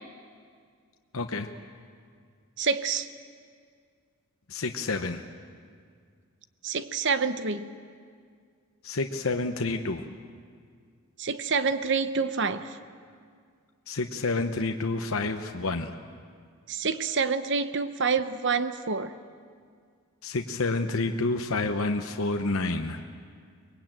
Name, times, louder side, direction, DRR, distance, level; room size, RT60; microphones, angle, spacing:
voice 1, 1.1-1.5 4.5-5.2 8.8-10.0 13.9-15.9 20.2-23.0, left 3 dB, 65° left, 5 dB, 0.9 m, -29 dB
voice 2, 2.6-3.1 6.6-7.7 11.2-12.7 16.7-19.1, right 5 dB, 55° right, 11 dB, 0.8 m, -27 dB
24.0 x 21.0 x 9.0 m, 2.1 s
head